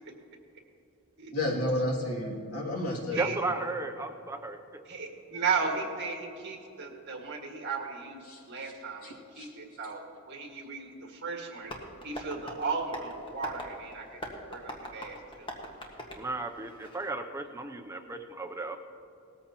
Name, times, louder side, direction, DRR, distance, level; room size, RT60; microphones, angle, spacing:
voice 1, 1.3-3.3 8.3-8.7 9.0-9.5, left 1 dB, 90° left, -3 dB, 2.4 m, -32 dB
voice 2, 3.2-4.8 16.1-18.8, right 3 dB, 15° right, 7 dB, 0.5 m, -35 dB
voice 3, 4.9-10.0 10.3-11.7 12.0-14.2 14.5-15.5, right 5 dB, 55° right, 2 dB, 1.8 m, -35 dB
Tap, 11.6-17.1, equal, 25° left, 1.5 m, -43 dB
18.5 x 14.0 x 2.9 m, 2.8 s
head